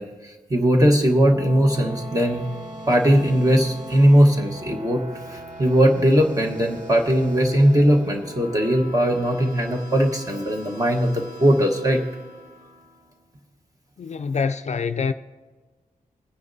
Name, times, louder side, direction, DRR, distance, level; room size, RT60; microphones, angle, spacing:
voice 1, 0.0-2.4 2.9-5.0 5.3-12.0, equal, 25° right, 1.2 m, -19 dB
sound 1, 0.9-13.2, equal, 65° right, 1.7 m, -41 dB
voice 2, 14.0-15.1, left 5 dB, 50° left, 0.4 m, -25 dB
21.5 x 9.5 x 2.7 m
wide cardioid pair, 155°, 15 cm